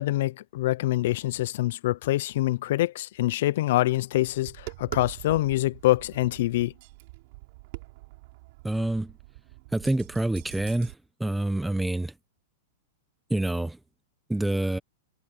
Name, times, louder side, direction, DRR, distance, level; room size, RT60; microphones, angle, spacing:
voice 1, 0.0-6.7, left 16 dB, 65° left, 0.6 m, -25 dB
Tap, 4.3-10.9, right 24 dB, 55° right, 7.7 m, -44 dB
voice 2, 8.6-9.1 9.7-10.9 11.2-12.1 13.3-13.8 14.3-14.8, right 1 dB, 5° right, 1.2 m, -27 dB
hypercardioid pair, 130°, 0 cm